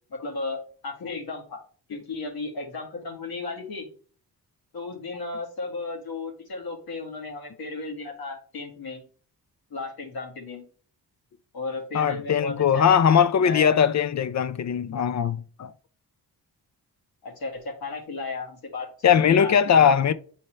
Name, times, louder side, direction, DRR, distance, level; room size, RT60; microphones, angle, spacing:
voice 1, 0.1-1.6 1.9-3.9 4.7-9.0 9.7-10.7 11.5-13.7 17.2-18.9 19.3-19.9, left 3 dB, 70° left, 1.9 m, -34 dB
voice 2, 11.9-15.7 19.0-20.1, left 8 dB, 45° left, 0.5 m, -20 dB
8.8 x 4.2 x 3.3 m
wide cardioid pair, 120°, 39 cm